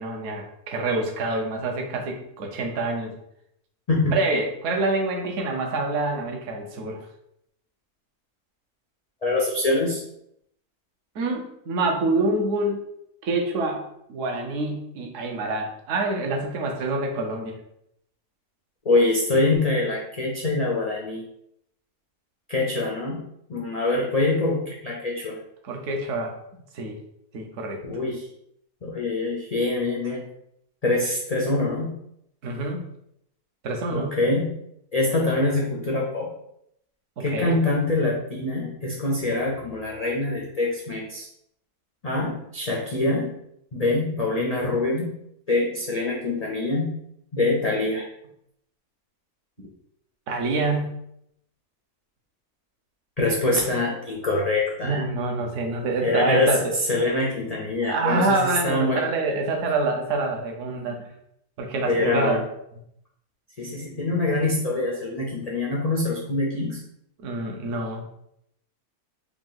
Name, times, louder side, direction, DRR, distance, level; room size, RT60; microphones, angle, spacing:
voice 1, 0.0-3.1 4.1-7.0 11.1-12.8 13.2-17.6 25.6-26.3 26.7-27.0 27.3-27.8 32.4-32.9 33.6-34.2 37.2-37.6 49.6-49.7 50.3-51.0 54.8-56.6 57.8-61.1 61.6-62.4 67.2-68.0, right 2 dB, 60° right, 2 dB, 1.0 m, -26 dB
voice 2, 9.2-10.0 18.8-21.2 22.5-23.2 23.5-25.4 27.8-28.2 28.8-30.2 30.8-31.9 33.9-34.5 34.9-36.3 37.2-41.3 42.0-43.3 43.7-45.1 45.5-46.9 47.3-48.0 53.2-55.0 56.0-56.5 56.9-58.4 58.6-59.0 61.9-62.4 63.6-66.8, left 2 dB, 85° left, -3 dB, 0.3 m, -24 dB
3.6 x 2.5 x 3.8 m, 0.75 s
omnidirectional pair, 1.7 m